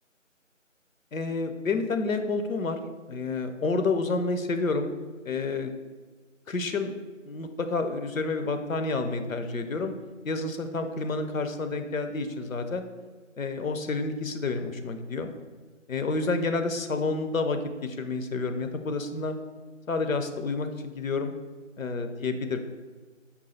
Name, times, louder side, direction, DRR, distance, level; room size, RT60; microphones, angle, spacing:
voice 1, 1.1-2.8 3.1-4.9 5.2-5.7 6.5-6.9 7.2-9.9 10.2-12.9 13.4-15.3 15.9-19.4 19.9-21.3 21.8-22.6, left 3 dB, 85° left, 7 dB, 0.6 m, -29 dB
5.4 x 2.4 x 4.1 m, 1.3 s
figure-of-eight pair, 165°, 40 cm